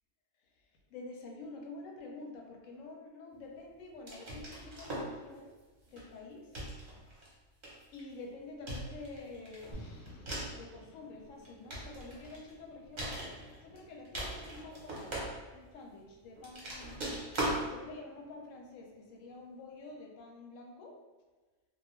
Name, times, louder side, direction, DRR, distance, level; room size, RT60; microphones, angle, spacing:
voice 1, 0.4-5.5 5.9-6.5 7.9-17.1 17.6-21.0, left 3 dB, 80° left, 1 dB, 0.9 m, -48 dB
sound 1, 4.1-5.2 5.9-6.1 6.5-7.3 7.6-8.1 8.7-10.6 11.3-12.5 13.0-13.8 14.0-15.7 16.4-17.6, right 1 dB, 45° right, 0.7 m, -39 dB
sound 2, 9.7-20.0, equal, 55° left, 0.7 m, -57 dB
2.3 x 2.1 x 3.0 m, 1.2 s
omnidirectional pair, 1.3 m